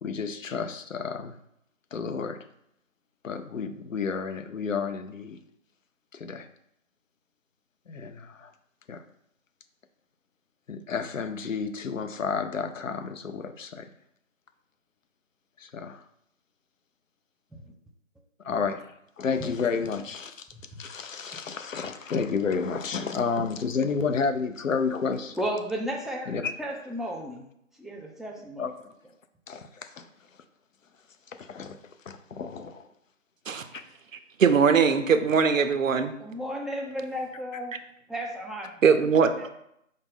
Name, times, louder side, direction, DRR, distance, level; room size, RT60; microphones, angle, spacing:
voice 1, 0.0-1.4 1.9-2.4 3.2-5.4 6.1-6.5 7.9-8.5 8.9-9.0 10.7-13.9 15.6-16.0 18.4-18.9 19.2-20.5 20.8-25.4 26.3-26.5 28.6-28.7 29.5-30.1 31.4-31.8 32.1-32.8 33.7-33.8, left 5 dB, 75° left, 8 dB, 0.5 m, -31 dB
voice 2, 25.3-27.5 27.8-28.7 36.2-37.8 38.1-38.8 39.4-39.5, equal, ahead, -1 dB, 0.3 m, -34 dB
voice 3, 34.4-36.1 38.8-39.3, right 6 dB, 75° right, 9 dB, 0.5 m, -20 dB
5.0 x 2.1 x 3.6 m, 0.76 s
figure-of-eight pair, 175°, 40 cm